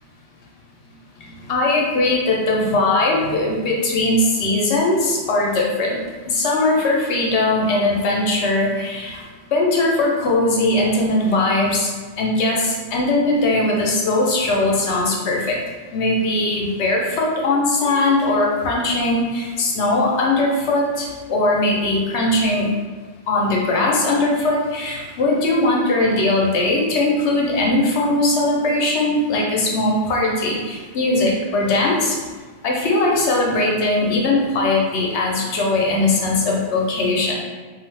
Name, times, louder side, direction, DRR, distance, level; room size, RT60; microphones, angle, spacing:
voice 1, 1.5-6.0 6.3-9.2 9.5-11.9 12.2-15.6 15.9-22.7 23.3-32.2 32.6-37.3, left 2 dB, 80° left, -2 dB, 0.9 m, -20 dB
2.5 x 2.3 x 3.2 m, 1.4 s
omnidirectional pair, 1.1 m